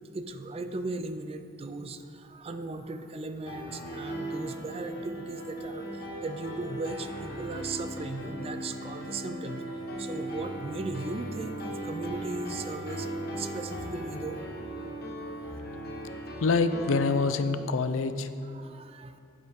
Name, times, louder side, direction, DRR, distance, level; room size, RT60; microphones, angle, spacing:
voice 1, 0.1-9.6 10.0-13.1 13.4-14.4 15.0-15.2 18.4-19.2, right 3 dB, 30° right, 9 dB, 0.4 m, -37 dB
Piano, 3.5-17.2, right 1 dB, 50° left, 1.3 m, -37 dB
voice 2, 16.4-18.3, left 4 dB, 80° left, 11 dB, 0.5 m, -26 dB
11.0 x 9.6 x 3.7 m, 2.6 s
head